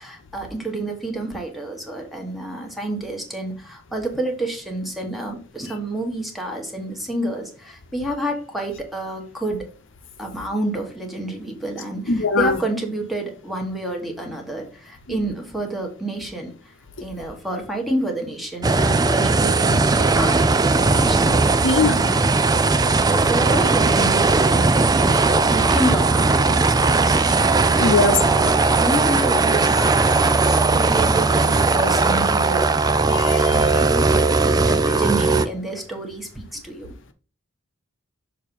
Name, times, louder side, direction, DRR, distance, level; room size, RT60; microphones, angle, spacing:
voice 1, 0.0-9.6 10.2-16.5 17.0-20.4 20.7-21.3 21.8-22.3 23.0-25.2 25.5-32.8 33.5-36.9, right 1 dB, ahead, 1.4 m, -29 dB
voice 2, 12.1-12.6 15.1-15.2 21.6-22.0 27.8-28.2 33.1-33.6, left 3 dB, 65° left, 0.9 m, -20 dB
sound 1, 18.6-35.5, right 3 dB, 20° right, 0.4 m, -18 dB
6.6 x 2.9 x 5.3 m
head